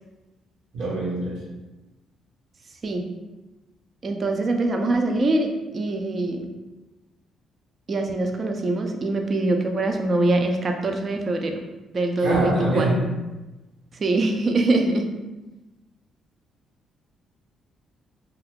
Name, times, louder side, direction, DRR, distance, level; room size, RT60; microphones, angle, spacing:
voice 1, 0.7-1.4 12.2-13.0, right 1 dB, 80° right, -5 dB, 1.2 m, -23 dB
voice 2, 4.0-6.5 7.9-11.5 11.9-12.9 14.0-15.0, right 2 dB, 40° right, 4 dB, 0.4 m, -23 dB
2.6 x 2.3 x 3.6 m, 1.1 s
cardioid pair, 90°, 0 cm